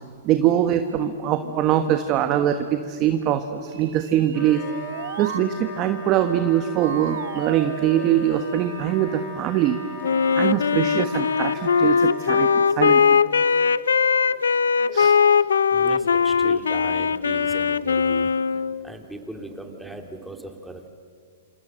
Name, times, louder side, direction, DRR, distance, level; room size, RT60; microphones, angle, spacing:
voice 1, 0.2-4.6 5.2-9.8 10.3-13.2 14.9-15.2, right 11 dB, 35° right, 8 dB, 1.4 m, -23 dB
sound 1, 3.7-5.5 6.8-8.9, right 9 dB, 70° right, 0.8 m, -35 dB
Wind instrument woodwind instrument, 4.3-12.7, left 2 dB, 35° left, 7.6 m, -38 dB
Wind instrument woodwind instrument 2, 10.0-18.9, left 6 dB, 90° left, 0.6 m, -20 dB
voice 2, 15.7-18.3 18.8-20.9, right 1 dB, 5° right, 4 dB, 2.4 m, -37 dB
27.5 x 27.0 x 7.7 m, 2.1 s
hypercardioid pair, 135°, 0 cm